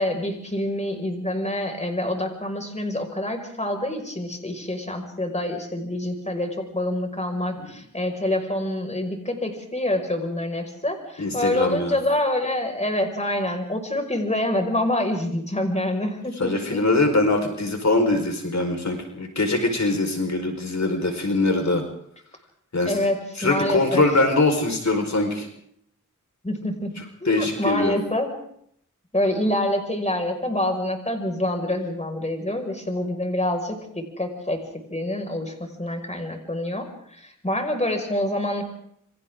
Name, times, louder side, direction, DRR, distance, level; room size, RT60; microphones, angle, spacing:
voice 1, 0.0-16.8 22.9-24.0 26.4-26.9 27.2-28.3 29.1-34.6 34.9-38.6, left 1 dB, 20° left, 4 dB, 5.6 m, -26 dB
voice 2, 11.2-12.0 16.4-21.8 22.7-23.0 23.4-25.5 27.2-28.0, left 2 dB, 60° left, 4 dB, 4.8 m, -22 dB
28.5 x 25.5 x 3.8 m, 0.68 s
wide cardioid pair, 75°, 31 cm